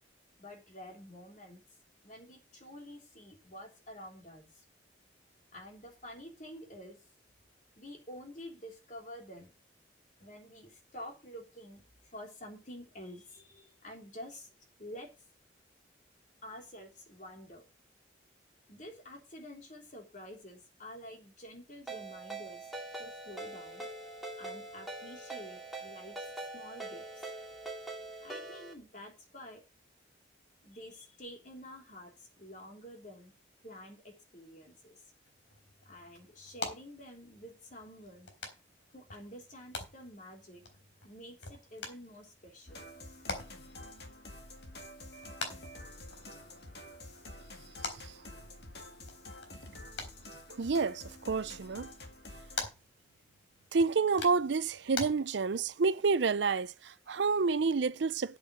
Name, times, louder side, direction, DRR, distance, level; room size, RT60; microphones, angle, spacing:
voice 1, 0.4-1.6 2.0-4.6 5.5-7.0 7.8-9.5 10.2-14.5 14.8-15.1 16.4-17.6 18.7-22.7 23.0-23.9 24.4-26.3 26.5-27.3 28.2-29.6 30.6-33.3 33.6-35.0 35.8-38.3 38.9-40.6 41.0-42.9, equal, 40° left, 3.4 m, -49 dB
Ringtone, 21.9-28.7, right 2 dB, ahead, 2.4 m, -43 dB
sound 1, 35.2-55.1, left 3 dB, 80° left, 3.9 m, -46 dB
sound 2, 42.7-52.7, left 1 dB, 60° left, 2.1 m, -49 dB
voice 2, 50.6-51.9 53.7-58.4, right 4 dB, 70° right, 0.5 m, -29 dB
8.4 x 8.2 x 6.2 m
head